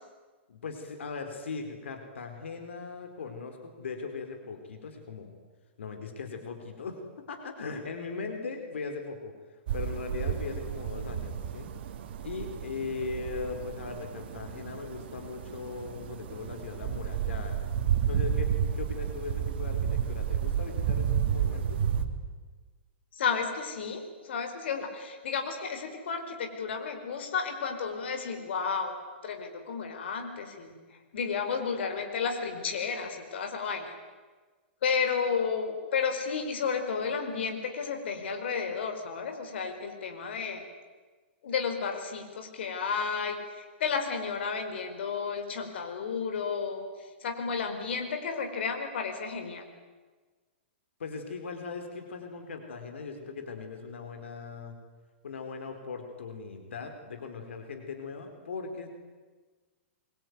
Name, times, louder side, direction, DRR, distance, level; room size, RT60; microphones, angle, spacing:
voice 1, 0.5-5.3 5.8-7.0 7.3-9.3 9.7-11.7 12.2-17.6 18.1-21.8 51.0-54.8 55.2-58.9, left 4 dB, 85° left, 5 dB, 4.2 m, -39 dB
sound 1, 9.7-22.0, right 8 dB, 55° right, 2.6 m, -31 dB
voice 2, 23.2-29.0 29.2-30.8 31.1-33.9 34.8-40.6 41.4-46.8 47.2-49.7, left 5 dB, 70° left, 5 dB, 4.7 m, -32 dB
24.0 x 23.0 x 9.5 m, 1.4 s
hypercardioid pair, 155°, 6 cm